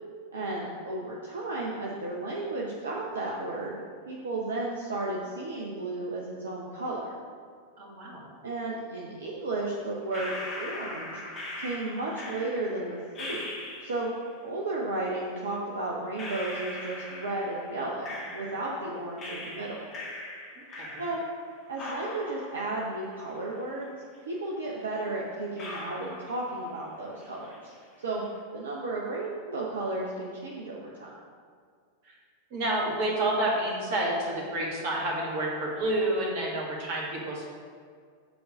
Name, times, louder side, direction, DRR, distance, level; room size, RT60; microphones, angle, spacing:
voice 1, 0.3-7.1 8.4-11.2 11.6-13.5 13.8-14.1 14.4-19.9 21.0-21.2 21.7-24.0 24.3-27.7 28.0-28.2 28.5-31.1, right 2 dB, 65° right, -4 dB, 0.9 m, -33 dB
voice 2, 7.8-8.3 20.7-21.0 32.0-32.1 32.5-37.4, right 1 dB, 50° right, -3 dB, 2.1 m, -29 dB
sound 1, 10.1-14.2 15.3-15.4 16.2-18.8 19.2-21.5 21.8-23.8 24.1-24.2 24.9-25.0 25.6-26.9 27.2-27.7, left 2 dB, 30° left, 1.9 m, -40 dB
8.2 x 3.9 x 6.3 m, 2.1 s
figure-of-eight pair, 90°, 0 cm